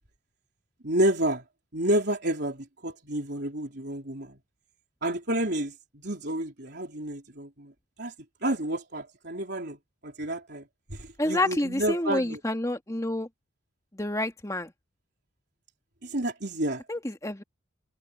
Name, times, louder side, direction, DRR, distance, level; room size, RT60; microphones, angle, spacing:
voice 1, 0.8-1.4 1.7-4.4 5.0-7.7 8.0-8.1 8.4-9.8 10.0-12.4 16.0-16.8, right 1 dB, 55° right, 3.9 m, -30 dB
voice 2, 11.2-13.3 13.9-14.7 16.9-17.4, left 1 dB, 15° left, 2.1 m, -28 dB
head